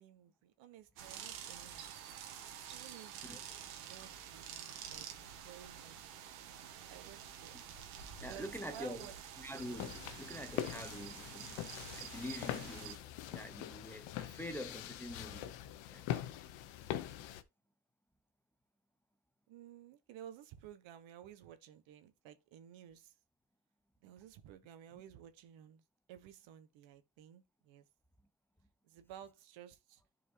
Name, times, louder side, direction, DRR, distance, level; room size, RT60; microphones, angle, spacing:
voice 1, 0.0-2.1 2.7-3.4 3.7-5.1 5.4-6.3 6.9-7.6 8.3-9.1 12.5-12.7 19.5-23.1 24.0-25.8 26.1-27.8 28.9-30.0, right 10 dB, 70° right, 1.3 m, -54 dB
sound 1, 1.0-13.0, right 9 dB, 85° right, 1.6 m, -49 dB
voice 2, 8.2-9.1 9.4-11.6 12.0-15.5 15.9-16.2 16.9-17.2, equal, 5° left, 0.8 m, -46 dB
sound 2, 9.6-17.4, left 12 dB, 70° left, 0.9 m, -43 dB
11.0 x 4.7 x 2.8 m
supercardioid pair, 95°, 48 cm